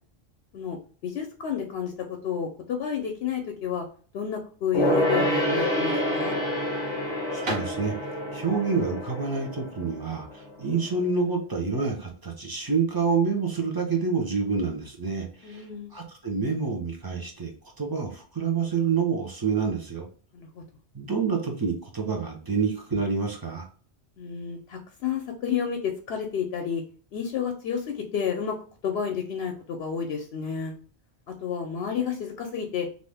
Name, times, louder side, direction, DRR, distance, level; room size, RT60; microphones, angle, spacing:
voice 1, 1.0-1.9 2.2-3.9 4.1-6.4 15.4-15.9 20.3-20.6 24.2-26.8 27.1-28.6 28.8-30.7 31.4-32.9, left 7 dB, 75° left, 4 dB, 0.8 m, -30 dB
Gong, 4.7-10.6 10.9-11.0, equal, 30° left, 0.9 m, -28 dB
voice 2, 7.3-8.0 8.3-20.1 20.9-23.6, right 5 dB, 25° right, 1 dB, 0.6 m, -28 dB
sound 1, 7.3-11.2, equal, 65° right, 1.3 m, -40 dB
2.7 x 2.4 x 3.3 m, 0.42 s
omnidirectional pair, 1.1 m